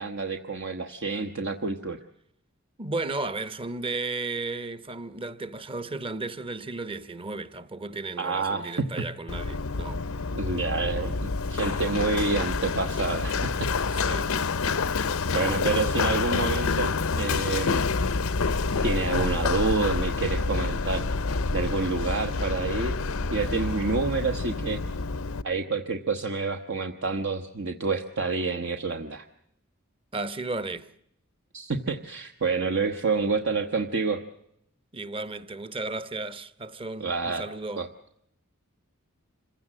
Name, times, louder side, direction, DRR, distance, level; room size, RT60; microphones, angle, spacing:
voice 1, 0.0-2.0 8.2-8.9 10.3-13.7 15.3-18.0 18.8-24.8 25.4-29.3 31.5-34.2 37.0-37.4 37.8-37.9, right 4 dB, 60° right, 1.1 m, -28 dB
voice 2, 2.8-10.0 13.9-14.3 15.1-15.3 30.1-30.9 34.9-37.9, right 3 dB, 25° right, 0.9 m, -34 dB
Run, 9.3-25.4, left 4 dB, 85° left, 0.7 m, -28 dB
26.5 x 16.0 x 7.6 m
head